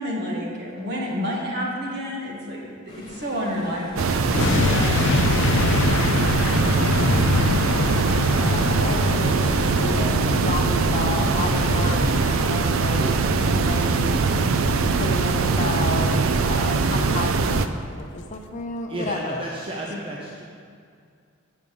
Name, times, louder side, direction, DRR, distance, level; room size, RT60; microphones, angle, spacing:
voice 1, 0.0-7.4, equal, 55° right, -3 dB, 1.8 m, -30 dB
sound 1, 2.9-16.2, left 1 dB, 20° left, 1.4 m, -36 dB
sound 2, 4.0-17.7, right 4 dB, 80° right, 0.5 m, -21 dB
sound 3, 4.3-17.5 17.8-17.9, left 5 dB, 60° left, 0.3 m, -27 dB
voice 2, 8.4-12.2 12.5-14.1 14.9-19.5, left 2 dB, 35° left, 3 dB, 0.7 m, -32 dB
voice 3, 18.9-20.4, right 1 dB, 25° right, -3 dB, 0.8 m, -32 dB
8.6 x 6.5 x 5.3 m, 2.3 s
head